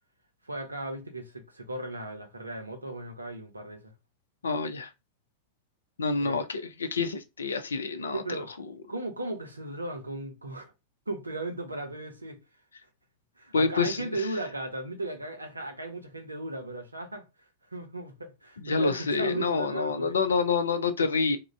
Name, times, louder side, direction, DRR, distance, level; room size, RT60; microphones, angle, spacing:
voice 1, 0.4-3.9 6.2-6.4 8.1-8.5 8.9-10.7 11.1-12.4 13.4-17.2 17.7-20.2, right 2 dB, 80° right, 0.6 m, -36 dB
voice 2, 4.4-4.9 6.0-8.2 13.5-14.1 18.6-21.4, left 4 dB, 70° left, 0.4 m, -27 dB
2.5 x 2.1 x 3.1 m
figure-of-eight pair, 90°, 0 cm